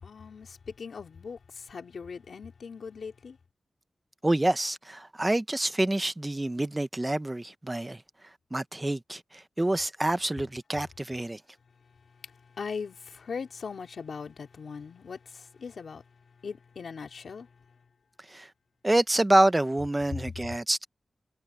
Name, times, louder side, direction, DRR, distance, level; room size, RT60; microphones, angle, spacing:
voice 1, 0.0-3.4 12.2-16.0 16.4-17.5, left 5 dB, 80° left, 3.0 m, -40 dB
voice 2, 4.2-8.0 8.5-11.4 18.3-18.5 18.8-20.9, right 1 dB, 20° right, 0.9 m, -27 dB
wide cardioid pair, 95°, 0 cm